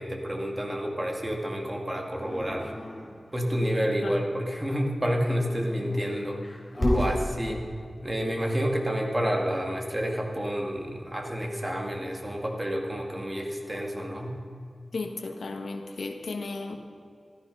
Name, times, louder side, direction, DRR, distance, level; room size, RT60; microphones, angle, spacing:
voice 1, 0.0-2.7 3.3-6.4 6.9-7.6 8.0-14.3, equal, 20° right, 1 dB, 2.3 m, -29 dB
Dog, 2.2-3.8 5.3-7.1, left 1 dB, 25° left, 3.7 m, -31 dB
voice 2, 14.9-16.8, left 3 dB, 90° left, 5 dB, 1.4 m, -34 dB
14.5 x 13.0 x 5.5 m, 2.3 s
wide cardioid pair, 85°, 0 cm